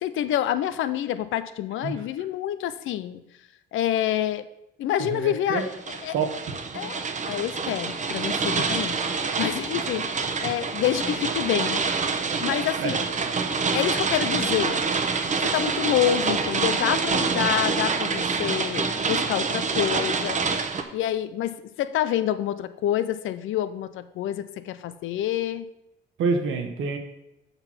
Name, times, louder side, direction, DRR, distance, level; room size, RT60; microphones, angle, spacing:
voice 1, 0.0-3.2 3.7-4.4 4.8-6.1 6.7-11.8 12.4-13.0 13.7-14.8 15.4-20.4 20.9-25.7, left 11 dB, 80° left, 13 dB, 0.6 m, -27 dB
voice 2, 5.0-5.6 6.1-6.5 12.8-13.0 26.2-27.0, right 5 dB, 85° right, 5 dB, 1.3 m, -27 dB
sound 1, 5.6-20.8, right 4 dB, 40° right, 0.9 m, -26 dB
7.0 x 6.0 x 5.7 m, 0.88 s
cardioid pair, 90°, 20 cm